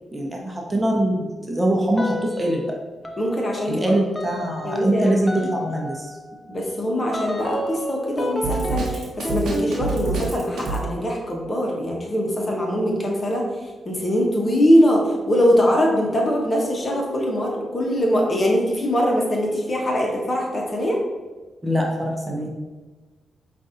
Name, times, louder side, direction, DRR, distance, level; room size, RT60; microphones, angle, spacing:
voice 1, 0.1-2.7 3.6-6.1 21.6-22.5, right 1 dB, 20° right, -1 dB, 0.8 m, -23 dB
sound 1, 2.0-2.7 3.0-13.4, left 1 dB, 20° left, 0.6 m, -33 dB
voice 2, 3.2-3.9 4.6-5.2 6.5-13.4 13.8-21.0, equal, 45° left, -1 dB, 1.0 m, -22 dB
Drum kit, 8.4-10.8, right 4 dB, 70° right, 0.9 m, -27 dB
5.2 x 2.5 x 2.7 m, 1.3 s
supercardioid pair, 45°, 0 cm